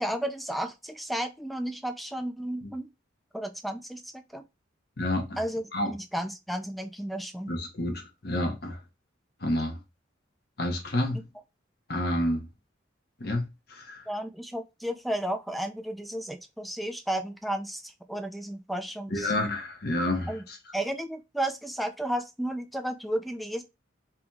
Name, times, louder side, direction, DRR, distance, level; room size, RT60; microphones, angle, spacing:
voice 1, 0.0-2.9 3.3-4.4 5.4-7.5 14.1-19.3 20.3-20.4 20.7-23.6, right 1 dB, ahead, 0.3 m, -33 dB
voice 2, 5.0-5.4 5.7-5.9 7.5-8.8 9.4-9.8 10.6-11.3 11.9-12.5 13.2-14.0 19.1-20.6, left 1 dB, 55° left, 1.1 m, -29 dB
3.4 x 2.9 x 3.5 m
head